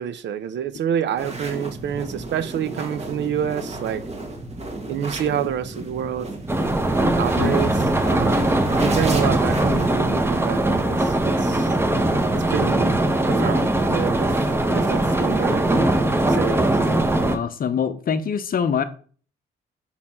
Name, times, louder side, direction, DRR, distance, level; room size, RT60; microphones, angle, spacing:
voice 1, 0.0-4.0 4.9-6.3 7.2-11.7 12.3-13.0 13.3-14.5 14.7-15.9 16.3-16.7, right 9 dB, 65° right, 0.7 m, -28 dB
sound 1, 1.2-10.1, right 2 dB, 35° right, 1.7 m, -34 dB
sound 2, 6.5-17.4, right 1 dB, 10° right, 1.0 m, -20 dB
voice 2, 7.4-7.8 17.3-18.8, left 7 dB, 45° left, 0.7 m, -25 dB
5.7 x 4.2 x 4.3 m
cardioid pair, 90°, 20 cm